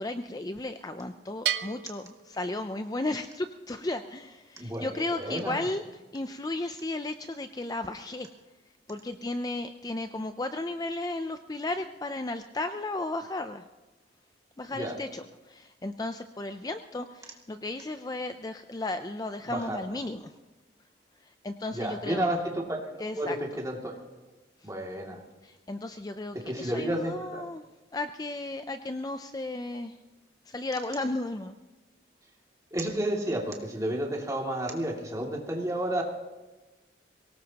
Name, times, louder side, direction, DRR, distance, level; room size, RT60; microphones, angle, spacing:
voice 1, 0.0-5.8 6.1-8.3 8.9-13.6 14.6-20.3 21.2-22.3 23.0-23.4 24.6-24.7 25.4-27.6 27.9-30.0 30.5-31.5, left 2 dB, 20° left, 8 dB, 0.5 m, -34 dB
Bell, 1.5-3.2, right 10 dB, 60° right, 0.7 m, -34 dB
voice 2, 4.6-5.6 14.7-15.0 19.4-19.8 21.7-24.0 24.6-25.2 26.4-27.4 32.7-36.0, right 1 dB, 20° right, -1 dB, 2.4 m, -31 dB
23.5 x 18.0 x 2.9 m, 1.2 s
head